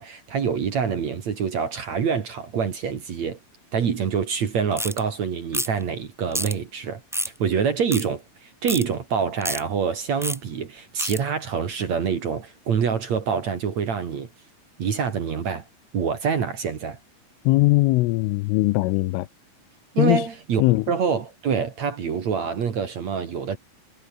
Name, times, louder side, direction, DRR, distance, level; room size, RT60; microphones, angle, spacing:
voice 1, 0.0-3.4 3.7-7.0 7.3-14.3 14.8-15.6 15.9-17.0 19.9-20.6 20.9-23.6, right 6 dB, 50° right, 2.5 m, -26 dB
sound 1, 4.8-5.0 5.5-5.8 6.3-6.5 7.1-7.4 7.9-8.1 8.7-8.8 9.4-9.6 10.2-10.4 11.0-11.2, equal, ahead, 5.5 m, -28 dB
voice 2, 17.5-19.3 20.0-20.3 20.6-20.9, left 20 dB, 85° left, 3.4 m, -20 dB
omnidirectional pair, 5.6 m